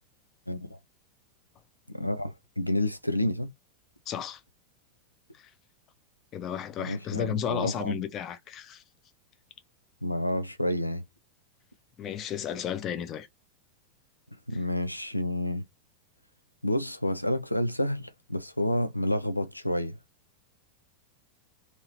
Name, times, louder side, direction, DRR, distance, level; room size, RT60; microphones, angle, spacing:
voice 1, 0.5-0.8 1.9-3.5 6.8-8.0 10.0-11.0 14.5-15.7 16.6-20.0, left 1 dB, 90° left, 0.3 m, -29 dB
voice 2, 4.1-4.4 5.3-5.5 6.3-8.8 12.0-13.3, left 9 dB, 30° left, 0.6 m, -33 dB
2.8 x 2.7 x 3.0 m
figure-of-eight pair, 90°, 0 cm